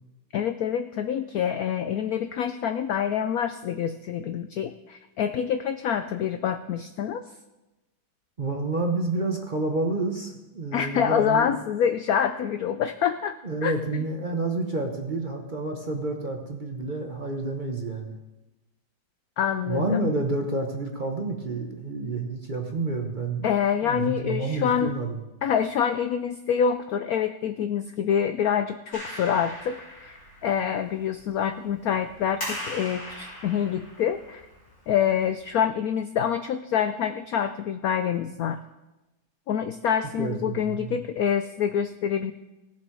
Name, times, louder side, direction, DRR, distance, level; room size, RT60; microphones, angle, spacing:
voice 1, 0.3-7.2 10.7-13.7 19.4-20.1 23.4-24.9 25.4-34.4 34.9-38.6 39.5-42.3, left 8 dB, 75° left, 9 dB, 0.8 m, -26 dB
voice 2, 8.4-11.6 13.4-18.2 19.7-23.5 23.9-25.2 40.2-41.0, right 2 dB, 35° right, 2 dB, 0.8 m, -29 dB
Clapping, 28.9-35.6, equal, 55° left, 6.2 m, -40 dB
18.0 x 7.3 x 4.6 m, 1.0 s
omnidirectional pair, 2.0 m